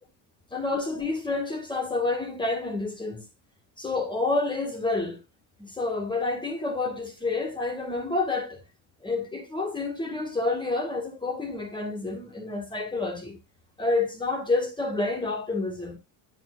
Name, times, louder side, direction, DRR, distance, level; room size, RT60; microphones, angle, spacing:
voice 1, 0.5-3.3 3.8-5.2 5.6-8.6 9.0-13.4 13.8-16.0, left 3 dB, 10° left, 1.9 m, -29 dB
9.2 x 8.8 x 2.4 m
cardioid pair, 135°, 38 cm